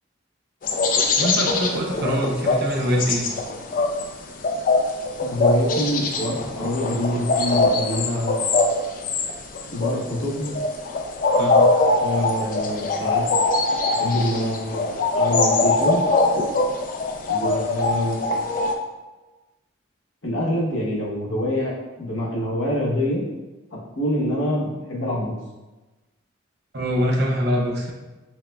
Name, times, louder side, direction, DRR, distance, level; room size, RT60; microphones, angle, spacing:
sound 1, 0.6-18.7, left 3 dB, 45° left, 0.3 m, -22 dB
voice 1, 1.2-3.2 11.4-11.7 26.7-27.9, equal, 55° right, -2 dB, 0.6 m, -23 dB
voice 2, 5.2-8.4 9.7-10.5 12.0-13.2 13.9-14.8 15.1-16.0 17.3-18.2 20.2-23.2 23.7-25.3, left 1 dB, 85° left, -4 dB, 1.0 m, -25 dB
6.0 x 2.1 x 2.3 m, 1.1 s
head